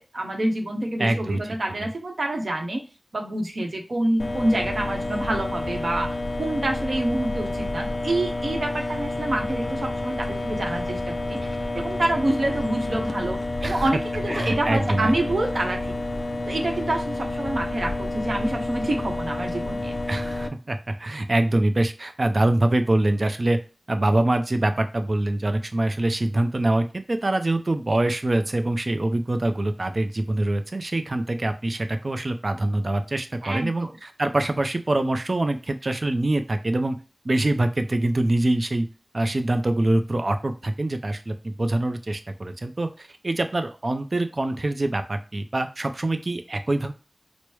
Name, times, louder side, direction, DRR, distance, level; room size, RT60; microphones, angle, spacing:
voice 1, 0.1-2.8 3.1-11.5 11.7-15.9 16.5-19.9 33.4-33.9, right 1 dB, 85° right, 2 dB, 0.8 m, -27 dB
voice 2, 1.0-1.4 1.7-1.9 13.6-13.8 14.3-15.1 20.1-23.6 23.9-37.0 37.2-38.9 39.1-46.9, right 1 dB, 60° right, 8 dB, 0.4 m, -24 dB
sound 1, 4.2-20.5, left 2 dB, 70° left, 0.4 m, -29 dB
4.6 x 2.0 x 3.1 m, 0.32 s
wide cardioid pair, 45°, 0 cm